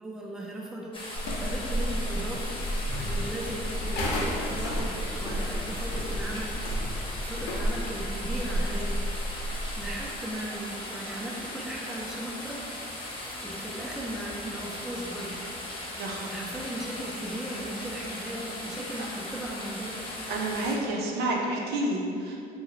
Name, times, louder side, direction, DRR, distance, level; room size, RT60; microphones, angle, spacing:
voice 1, 0.0-6.8 7.2-9.2 9.8-12.8 13.4-15.4 16.2-20.1, right 1 dB, 5° right, -3 dB, 0.4 m, -37 dB
sound 1, 0.9-20.7, left 1 dB, 30° left, 0.7 m, -38 dB
sound 2, 1.2-10.1, equal, 85° left, 0.5 m, -31 dB
voice 2, 20.3-22.4, right 1 dB, 75° right, -1 dB, 0.5 m, -29 dB
2.8 x 2.1 x 3.9 m, 2.6 s
cardioid pair, 110°, 17 cm